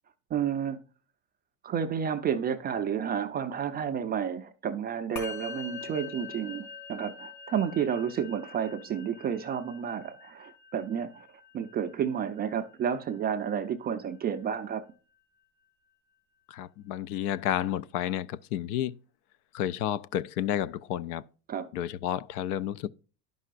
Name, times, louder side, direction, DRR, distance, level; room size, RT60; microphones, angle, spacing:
voice 1, 0.3-0.8 1.6-11.3 11.5-14.8 21.5-21.7, right 8 dB, 20° right, 0.3 m, -31 dB
Musical instrument, 5.2-14.7, left 5 dB, 85° left, 2.4 m, -45 dB
voice 2, 16.5-19.0 19.5-21.2 21.7-22.9, left 11 dB, 65° left, 0.5 m, -31 dB
11.5 x 5.5 x 2.4 m
supercardioid pair, 105°, 49 cm